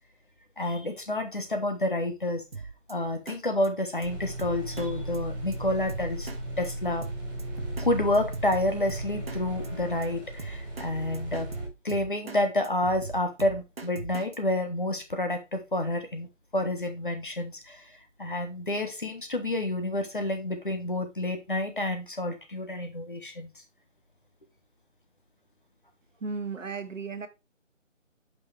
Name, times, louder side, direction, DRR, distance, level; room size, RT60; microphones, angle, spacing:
voice 1, 0.6-2.4 2.9-6.3 6.6-7.1 7.8-11.5 11.8-16.3 16.5-23.5, left 1 dB, 40° left, 1.1 m, -29 dB
Drum kit, 2.5-2.9 3.3-3.4 3.6-3.7 4.0-4.1 4.4-4.9 5.1-5.2 5.5-5.6 5.9-6.4 6.6-6.7 7.0-7.9 8.1-9.4 9.6-9.7 10.0-10.1 10.4-10.9 11.1-12.4 12.6-14.4, right 4 dB, 50° right, 0.6 m, -40 dB
sound 1, 4.0-11.7, right 1 dB, 35° right, 2.3 m, -36 dB
voice 2, 26.2-27.3, right 4 dB, 75° right, 1.2 m, -34 dB
7.1 x 5.6 x 3.2 m
figure-of-eight pair, 180°, 39 cm